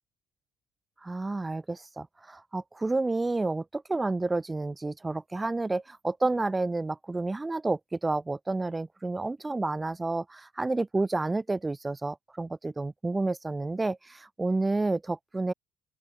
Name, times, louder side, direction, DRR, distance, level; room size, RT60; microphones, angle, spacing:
voice 1, 1.0-15.5, right 2 dB, 20° right, 3.7 m, -30 dB
open air
supercardioid pair, 65°, 0 cm